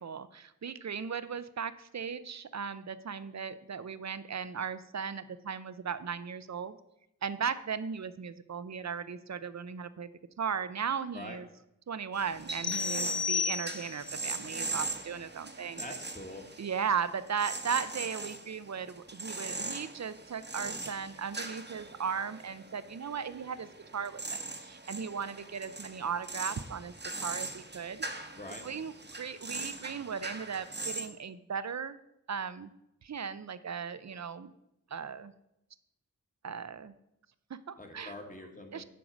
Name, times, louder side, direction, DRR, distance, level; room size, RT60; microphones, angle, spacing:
voice 1, 0.0-6.8 7.2-10.1 10.4-11.5 11.9-15.8 16.6-23.7 23.9-26.9 27.2-28.3 28.6-32.0 32.3-32.7 33.0-34.5 34.9-35.3 36.4-36.9 37.5-38.1 38.7-38.8, right 6 dB, 50° right, 14 dB, 0.5 m, -37 dB
sound 1, 12.1-31.1, right 2 dB, 30° right, 1.0 m, -41 dB
sound 2, 12.6-14.2, left 6 dB, 45° left, 0.5 m, -32 dB
voice 2, 15.8-16.5 28.4-28.6 37.8-38.8, left 1 dB, 20° left, 3 dB, 1.5 m, -44 dB
7.8 x 4.7 x 6.2 m, 0.85 s
wide cardioid pair, 45°, 35 cm